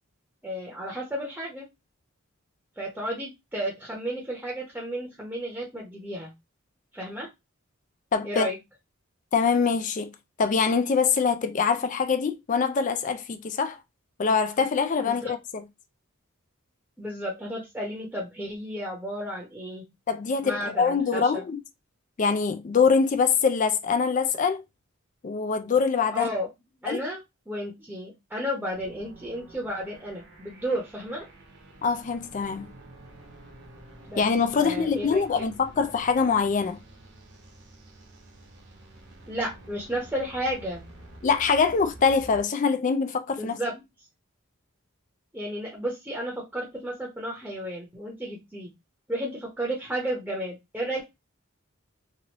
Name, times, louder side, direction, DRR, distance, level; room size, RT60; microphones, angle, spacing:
voice 1, 0.4-1.6 2.8-6.3 6.9-7.3 8.2-8.6 14.6-14.7 15.0-15.3 17.0-19.8 20.4-21.4 26.1-26.5 26.8-27.2 27.5-31.3 34.1-34.2 34.6-35.2 39.3-40.8 43.4-43.8 45.3-48.7 49.1-51.0, equal, 5° right, 0.8 m, -33 dB
voice 2, 8.1-8.5 9.3-10.1 10.4-13.8 14.2-15.6 20.1-21.6 22.2-24.6 25.2-26.3 26.9-27.0 31.8-32.7 34.2-36.8 41.2-43.6, left 5 dB, 35° left, 0.3 m, -24 dB
sound 1, 28.7-42.4, right 1 dB, 55° right, 1.0 m, -49 dB
2.9 x 2.6 x 2.9 m
head